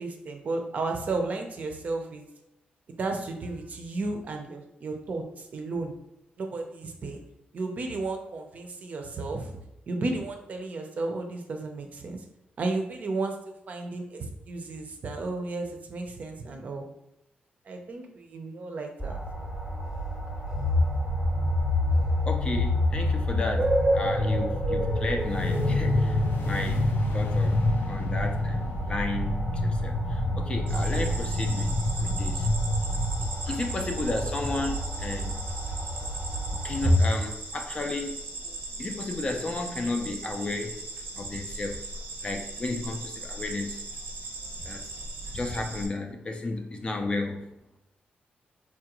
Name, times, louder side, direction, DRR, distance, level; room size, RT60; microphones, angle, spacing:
voice 1, 0.0-2.2 3.0-5.9 6.4-7.2 7.5-9.5 9.9-12.2 12.6-16.9 17.7-19.2, right 3 dB, 45° right, 4 dB, 0.5 m, -33 dB
sound 1, 19.0-37.0, right 1 dB, 10° right, 0.7 m, -31 dB
sound 2, 20.5-33.3, left 2 dB, 90° left, 0.4 m, -27 dB
voice 2, 22.2-26.9 27.1-32.5 33.4-35.4 36.5-40.8 41.2-41.8 42.2-43.8 44.6-44.8 45.3-47.5, left 2 dB, 30° left, 4 dB, 0.4 m, -33 dB
sound 3, 30.7-45.9, right 2 dB, 85° right, 0.7 m, -38 dB
4.3 x 2.4 x 2.9 m, 0.85 s
wide cardioid pair, 145°, 3 cm